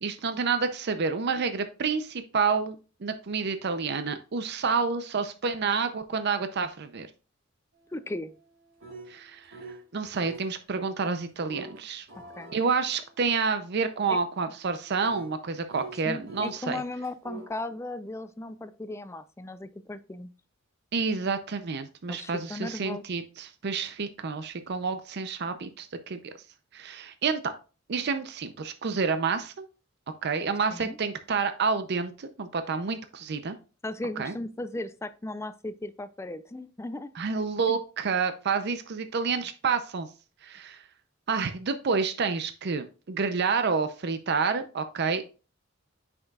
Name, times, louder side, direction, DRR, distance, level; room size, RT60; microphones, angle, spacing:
voice 1, 0.0-2.8 3.0-7.1 9.1-9.6 9.9-12.1 12.5-16.8 20.9-26.3 26.7-27.5 27.9-29.5 30.2-33.6 34.2-34.3 37.2-40.1 40.4-40.8 41.3-45.2, right 5 dB, 55° right, 9 dB, 0.6 m, -29 dB
sound 1, 7.7-9.9 10.2-10.5 11.5-16.6 17.0-17.5, right 3 dB, 75° right, 3.1 m, -47 dB
voice 2, 7.9-8.3 12.4-12.5 14.1-14.2 16.0-20.3 22.1-23.0 30.7-31.0 33.8-37.1 37.7-37.8, left 2 dB, 15° left, 12 dB, 0.5 m, -36 dB
7.8 x 6.0 x 2.3 m, 0.34 s
head